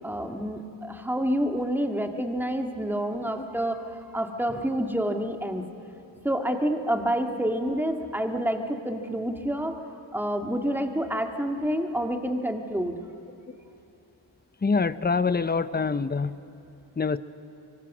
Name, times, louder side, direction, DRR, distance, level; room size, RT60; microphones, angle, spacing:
voice 1, 0.0-5.6 6.2-9.8 10.1-13.0, equal, 5° right, 4 dB, 2.0 m, -28 dB
voice 2, 14.6-16.3 17.0-17.2, left 4 dB, 20° left, 14 dB, 0.8 m, -25 dB
25.0 x 24.5 x 6.2 m, 2.8 s
cardioid pair, 55°, 47 cm